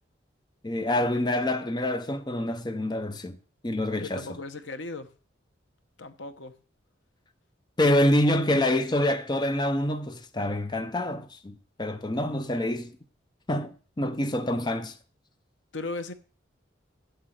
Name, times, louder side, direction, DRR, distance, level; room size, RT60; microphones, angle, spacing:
voice 1, 0.6-3.4 3.6-4.3 7.8-13.0 13.5-15.0, left 1 dB, 25° left, 0.6 m, -26 dB
voice 2, 3.9-5.1 6.0-6.5 15.7-16.1, left 2 dB, 75° left, 1.0 m, -37 dB
8.1 x 7.6 x 6.4 m
head